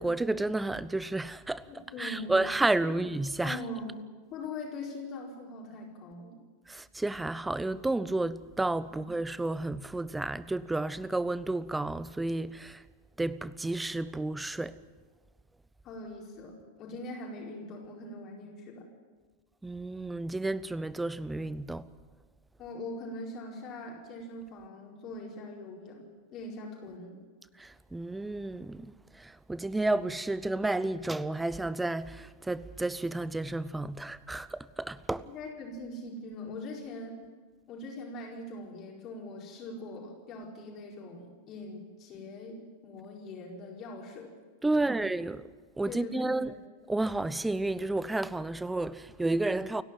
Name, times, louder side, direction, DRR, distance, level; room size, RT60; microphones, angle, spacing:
voice 1, 0.0-3.6 6.7-12.8 13.2-14.8 19.6-21.9 27.6-35.3 44.6-45.5 45.8-46.5 46.9-49.8, right 2 dB, 5° right, 0.7 m, -31 dB
voice 2, 1.7-2.4 2.8-3.0 3.4-3.9 4.3-6.4 8.9-9.0 15.8-18.9 22.6-27.2 35.3-37.2 37.7-44.3 44.7-45.0 45.8-46.6, left 2 dB, 35° left, 4.7 m, -42 dB
29.5 x 11.5 x 9.1 m
figure-of-eight pair, 90°, 0 cm